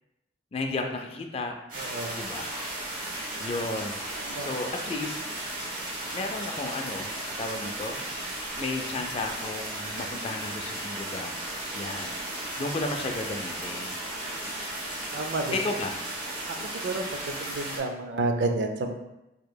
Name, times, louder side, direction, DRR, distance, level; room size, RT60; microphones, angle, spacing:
voice 1, 0.5-1.8 2.1-2.6 3.4-4.0 4.4-5.2 6.1-8.0 8.5-11.4 11.7-13.9 15.1-16.0, left 2 dB, 35° left, 4 dB, 0.3 m, -34 dB
sound 1, 1.7-17.8, right 1 dB, 50° right, 1.2 m, -35 dB
voice 2, 1.8-2.2 4.3-4.5 15.1-15.5 16.8-17.0 17.4-18.9, right 2 dB, 75° right, 5 dB, 0.4 m, -29 dB
4.5 x 2.8 x 2.2 m, 0.94 s
head